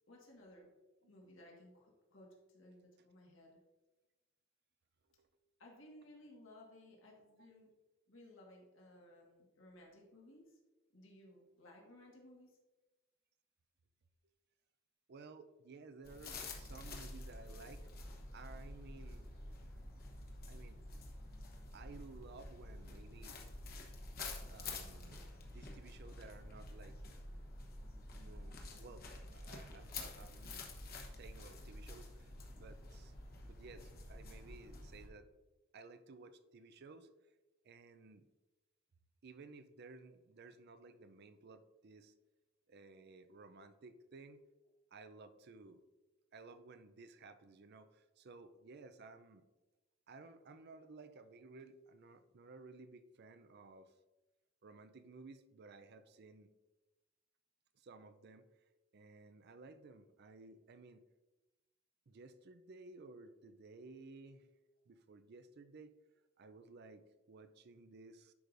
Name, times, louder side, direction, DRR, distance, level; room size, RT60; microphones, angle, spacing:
voice 1, 0.1-0.7 1.1-3.6 5.6-7.7 8.1-10.6 10.9-12.6, left 1 dB, 75° left, -2 dB, 1.7 m, -59 dB
voice 2, 15.1-17.9 18.3-19.3 20.5-20.8 21.7-23.4 24.5-27.0 28.1-30.7 31.1-35.3 35.7-37.1 37.6-38.3 39.2-42.1 42.7-44.5 44.9-45.8 46.3-49.4 50.1-53.9 54.6-56.5 57.7-58.6 58.9-61.0 62.1-64.5 64.9-65.9 66.4-68.3, right 3 dB, 55° right, 11 dB, 0.5 m, -56 dB
sound 1, 16.0-35.1, left 2 dB, 50° left, 1.1 m, -49 dB
10.5 x 4.9 x 2.6 m, 1.1 s
head